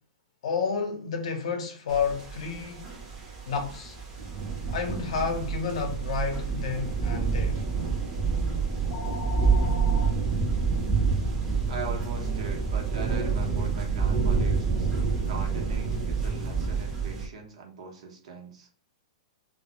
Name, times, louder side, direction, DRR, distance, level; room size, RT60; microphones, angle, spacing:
voice 1, 0.4-2.9 3.5-4.0 4.7-7.7, left 5 dB, 65° left, 0.6 m, -30 dB
sound 1, 1.9-17.3, right 5 dB, 20° right, 0.6 m, -28 dB
sound 2, 4.7-10.1, left 2 dB, 20° left, 0.6 m, -44 dB
voice 2, 11.7-18.7, right 4 dB, 70° right, 0.8 m, -40 dB
2.2 x 2.0 x 2.8 m
hypercardioid pair, 165°, 4 cm